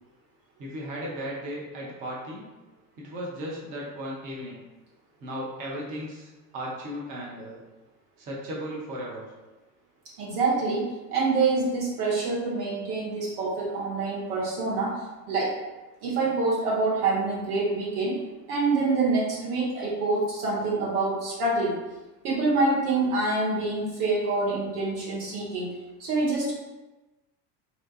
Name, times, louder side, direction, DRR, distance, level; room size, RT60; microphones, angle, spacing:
voice 1, 0.6-2.5 3.0-4.6 5.2-7.6 8.2-9.3, equal, 20° right, -4 dB, 0.3 m, -36 dB
voice 2, 10.2-15.0 15.3-15.5 16.0-18.2 18.5-21.8 22.2-25.7 26.0-26.5, right 3 dB, 65° right, -4 dB, 1.1 m, -26 dB
2.7 x 2.2 x 2.3 m, 1.1 s
figure-of-eight pair, 75°, 50 cm